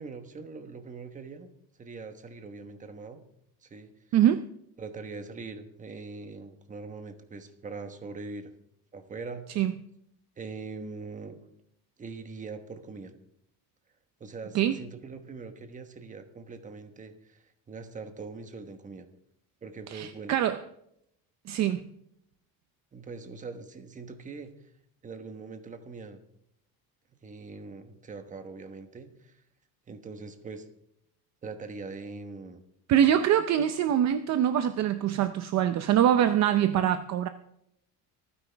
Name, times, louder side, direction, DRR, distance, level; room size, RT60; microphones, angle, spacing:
voice 1, 0.0-1.5 1.8-3.2 3.6-3.9 4.8-8.5 8.9-9.4 10.4-11.4 12.0-13.1 14.2-19.1 19.6-20.4 22.9-24.5 25.0-26.2 27.2-29.4 29.9-30.7 31.4-32.6, right 4 dB, 20° right, 8 dB, 1.2 m, -42 dB
voice 2, 4.1-4.5 9.6-9.7 14.5-14.8 19.9-20.6 21.5-21.8 32.9-37.3, right 10 dB, 45° right, 10 dB, 0.6 m, -24 dB
25.0 x 9.9 x 3.4 m, 0.75 s
cardioid pair, 170°, 39 cm